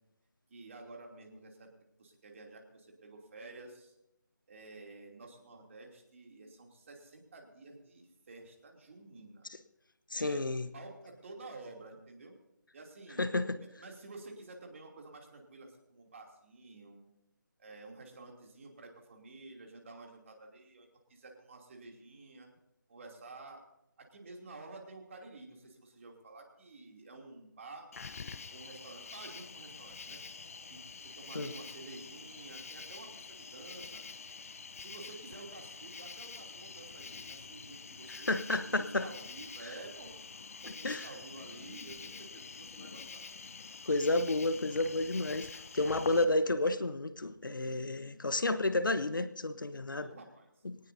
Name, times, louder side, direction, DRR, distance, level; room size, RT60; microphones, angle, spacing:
voice 1, 0.5-1.7 2.0-3.9 4.5-9.5 10.1-10.4 10.7-12.3 12.7-17.0 17.6-22.5 22.9-23.6 24.0-27.9 28.5-30.2 30.7-34.0 34.8-40.1 40.6-43.2 50.0-50.5, right 3 dB, 40° right, 2.9 m, -51 dB
voice 2, 10.1-10.7 13.2-13.6 31.3-31.5 38.3-39.1 40.6-41.0 43.9-50.1 50.6-50.8, left 2 dB, 75° left, 1.0 m, -31 dB
Cricket, 27.9-46.2, left 5 dB, 45° left, 0.8 m, -47 dB
21.5 x 18.5 x 2.7 m
figure-of-eight pair, 155°, 11 cm